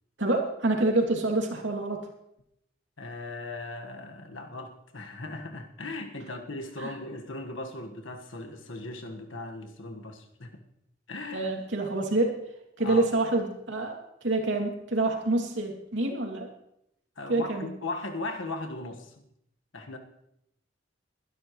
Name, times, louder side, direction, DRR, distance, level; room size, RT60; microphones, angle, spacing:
voice 1, 0.2-2.0 6.8-6.9 11.3-12.4 12.8-14.0 14.2-16.5 17.3-17.7, right 2 dB, 75° right, 1 dB, 2.8 m, -27 dB
voice 2, 3.0-10.6 11.1-11.5 12.8-13.1 17.2-19.2 19.7-20.0, left 2 dB, 90° left, 4 dB, 1.6 m, -38 dB
22.0 x 12.0 x 3.2 m, 0.79 s
head